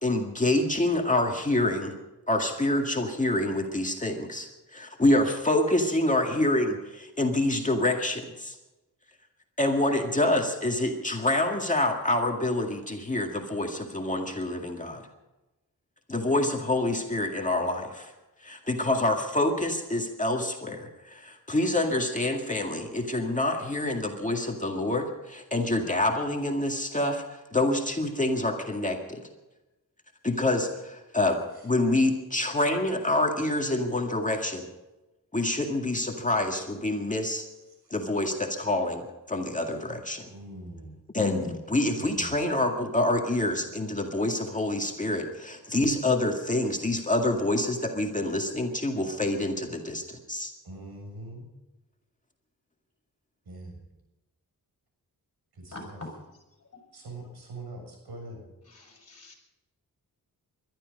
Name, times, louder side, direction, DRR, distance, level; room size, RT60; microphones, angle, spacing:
voice 1, 0.0-1.9 2.3-8.6 9.6-15.0 16.1-18.1 18.4-29.2 30.2-31.4 31.6-34.7 35.3-37.5 37.9-40.3 41.1-50.5, left 1 dB, 20° left, 2 dB, 2.0 m, -27 dB
voice 2, 40.2-41.0 42.0-42.4 50.6-51.5 53.4-53.8 55.5-56.0 56.9-58.4, right 2 dB, 85° right, 2 dB, 6.7 m, -43 dB
voice 3, 58.7-59.4, left 2 dB, 40° left, 2 dB, 5.7 m, -46 dB
21.0 x 13.0 x 5.3 m, 1.0 s
wide cardioid pair, 100°, 37 cm